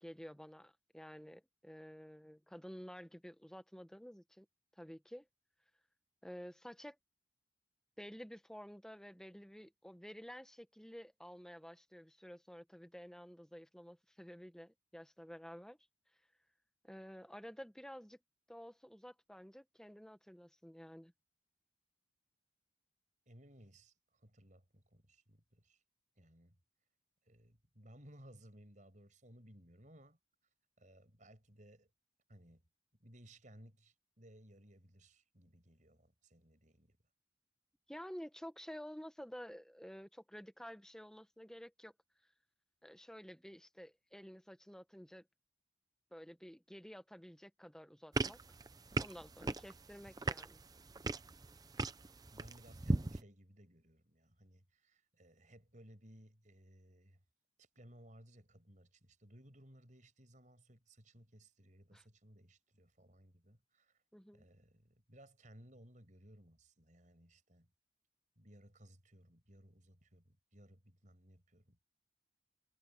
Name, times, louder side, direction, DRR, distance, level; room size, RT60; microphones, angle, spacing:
voice 1, 0.0-4.5 4.8-5.3 6.2-7.0 8.0-15.8 16.8-18.2 18.5-21.1 37.9-41.9 42.8-45.3 46.1-48.4 49.0-50.6 61.9-62.0 64.1-64.4, equal, 5° left, 1.0 m, -51 dB
voice 2, 23.3-25.8 26.2-26.6 27.3-30.2 30.8-31.9 32.3-32.6 33.0-37.0 52.3-57.2 57.6-64.0 64.3-67.7 68.4-71.9, right 1 dB, 40° right, 6.2 m, -61 dB
sound 1, 48.1-53.2, right 2 dB, 20° right, 0.6 m, -39 dB
head